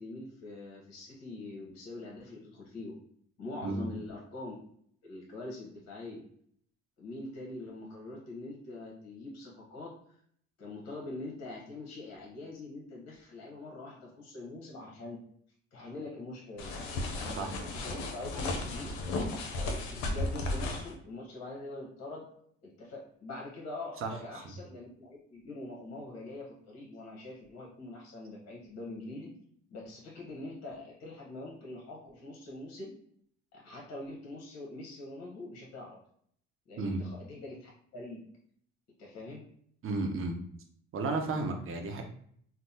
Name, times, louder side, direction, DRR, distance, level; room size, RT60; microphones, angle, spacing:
voice 1, 0.0-3.0 3.4-4.6 5.0-6.2 7.0-9.9 10.6-15.2 15.7-16.7 17.1-19.0 19.6-22.3 22.6-29.3 29.7-32.9 33.5-36.0 36.7-38.2 39.0-39.4, left 2 dB, 55° left, -3 dB, 1.1 m, -44 dB
sound 1, 16.6-20.9, left 2 dB, 75° left, 0.6 m, -34 dB
voice 2, 39.8-40.4 40.9-42.0, right 3 dB, 40° right, 4 dB, 0.7 m, -32 dB
3.5 x 2.0 x 2.8 m, 0.63 s
hypercardioid pair, 60°, 32 cm